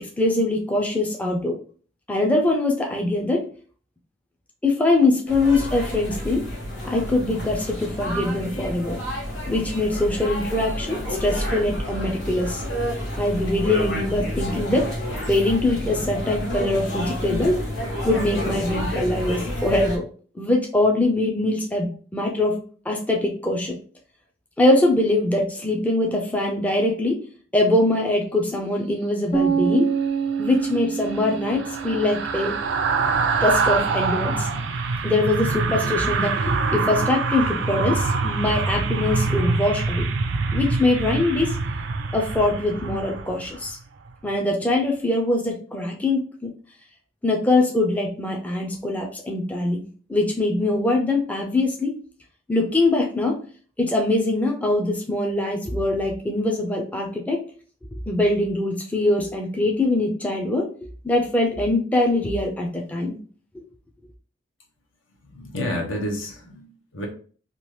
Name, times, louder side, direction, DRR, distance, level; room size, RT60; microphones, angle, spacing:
voice 1, 0.0-1.6 2.1-3.5 4.6-6.4 6.8-9.0 9.5-12.6 13.2-14.9 15.3-17.6 18.0-20.0 20.4-22.6 22.9-23.8 24.6-27.2 27.5-29.9 30.4-32.6 33.4-34.5 35.0-40.1 40.5-41.6 42.1-43.8 44.2-46.5 47.2-49.8 50.1-51.9 52.5-53.4 53.8-57.4 58.1-60.7 61.0-63.2, left 2 dB, 10° left, 0 dB, 0.4 m, -22 dB
sound 1, 5.3-20.0, equal, 60° left, 1.2 m, -29 dB
sound 2, 29.3-33.2, right 6 dB, 35° left, 0.7 m, -26 dB
sound 3, 30.4-43.7 44.1-44.3, right 4 dB, 60° right, 0.4 m, -25 dB
voice 2, 65.3-67.1, left 1 dB, 80° left, 1 dB, 0.9 m, -30 dB
2.9 x 2.4 x 3.1 m, 0.42 s
head